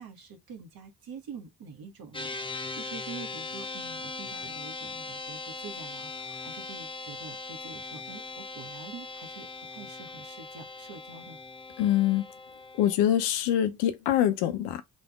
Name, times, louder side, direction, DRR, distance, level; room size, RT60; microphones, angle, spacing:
voice 1, 0.0-11.4, right 5 dB, 50° right, 1.5 m, -46 dB
sound 1, 2.1-13.0, left 3 dB, 10° left, 0.8 m, -40 dB
voice 2, 11.8-12.3 12.8-14.8, left 11 dB, 65° left, 0.8 m, -24 dB
4.1 x 3.5 x 3.5 m
figure-of-eight pair, 40°, 45 cm